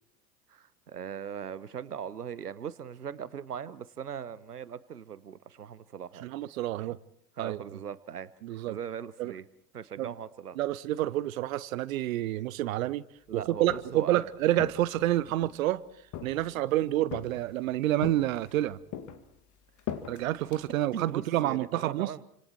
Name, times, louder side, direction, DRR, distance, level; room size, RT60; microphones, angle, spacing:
voice 1, 0.5-6.2 6.8-7.0 7.4-9.5 9.7-10.6 13.3-14.2 20.9-22.2, right 8 dB, 80° right, 1.1 m, -40 dB
voice 2, 6.2-7.0 7.4-7.6 8.4-8.8 9.2-9.3 10.0-10.1 10.6-13.0 13.3-15.8 16.2-18.8 20.1-22.1, right 14 dB, 60° right, 1.0 m, -28 dB
Walk footsteps, 13.5-14.1 14.6-15.6 16.1-16.7 17.1-17.6 18.0-18.6 18.9-21.1, left 10 dB, 40° left, 2.3 m, -41 dB
30.0 x 26.5 x 4.6 m
figure-of-eight pair, 80°, 46 cm